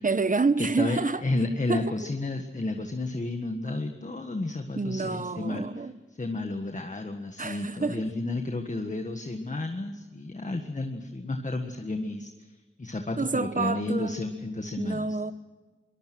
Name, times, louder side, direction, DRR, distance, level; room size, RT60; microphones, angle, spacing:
voice 1, 0.0-1.2 1.7-1.9 4.8-5.9 7.4-8.1 13.2-14.2 14.8-15.3, right 4 dB, 40° right, 1.0 m, -28 dB
voice 2, 0.6-5.9 6.2-15.2, left 2 dB, 35° left, 1.6 m, -32 dB
23.0 x 20.0 x 6.2 m
wide cardioid pair, 75°, 21 cm